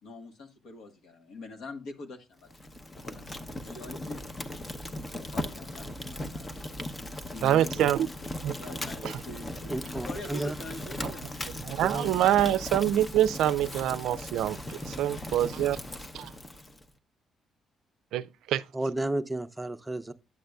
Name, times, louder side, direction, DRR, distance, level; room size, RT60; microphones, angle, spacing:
voice 1, 0.0-2.7 2.9-4.2 5.1-6.8 7.1-11.4, left 2 dB, 80° left, 1.3 m, -44 dB
Fire, 2.4-16.8, left 1 dB, 25° left, 0.7 m, -38 dB
voice 2, 7.4-8.0 8.4-8.5 9.0-9.2 11.6-14.6 14.8-15.8 16.1-16.3 18.1-18.6, right 12 dB, 85° right, 0.4 m, -25 dB
voice 3, 9.7-10.5 11.8-12.1 18.7-20.1, right 1 dB, 10° right, 0.6 m, -32 dB
9.4 x 6.4 x 2.3 m
cardioid pair, 90°, 0 cm